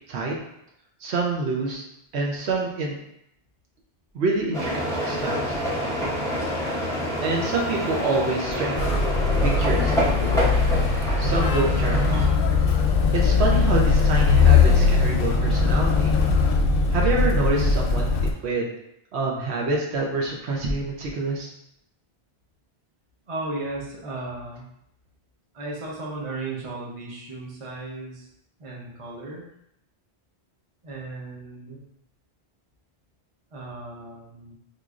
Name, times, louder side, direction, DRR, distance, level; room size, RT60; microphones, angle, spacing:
voice 1, 1.0-1.8 2.1-3.0 4.1-4.7 5.0-5.6 7.2-9.0 9.4-10.5 11.2-12.3 13.1-16.1 16.9-18.7 19.1-21.5, right 3 dB, 80° right, -1 dB, 1.0 m, -27 dB
sound 1, 4.5-12.3, equal, 5° left, 0.5 m, -27 dB
Motor vehicle (road), 8.8-18.3, left 4 dB, 65° left, 0.7 m, -20 dB
voice 2, 23.3-24.7 25.5-28.3 28.6-29.4 30.8-31.8 33.5-34.5, right 2 dB, 35° right, -3 dB, 0.7 m, -35 dB
4.7 x 2.6 x 2.4 m, 0.78 s
omnidirectional pair, 1.1 m